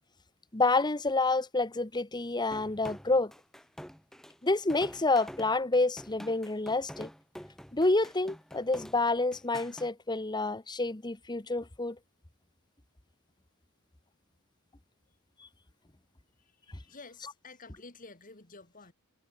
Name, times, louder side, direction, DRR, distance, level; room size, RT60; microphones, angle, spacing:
voice 1, 0.5-3.3 4.4-7.1 7.7-11.9, left 2 dB, 20° left, 1.1 m, -28 dB
sound 1, 2.5-9.9, equal, ahead, 3.1 m, -47 dB
voice 2, 16.8-18.9, left 3 dB, 40° left, 3.0 m, -50 dB
head